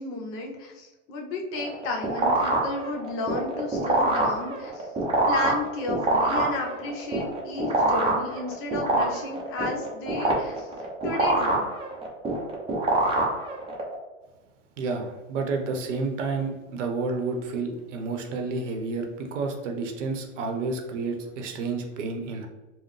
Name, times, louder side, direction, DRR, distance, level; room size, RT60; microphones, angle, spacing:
voice 1, 0.0-4.9 5.2-10.7 11.0-11.6, left 2 dB, 35° left, 0 dB, 0.8 m, -33 dB
sound 1, 1.5-13.9, right 2 dB, 15° right, 0.7 m, -26 dB
voice 2, 14.8-22.5, right 3 dB, 75° right, 3 dB, 0.8 m, -30 dB
4.3 x 2.1 x 3.2 m, 1.1 s
hypercardioid pair, 120°, 38 cm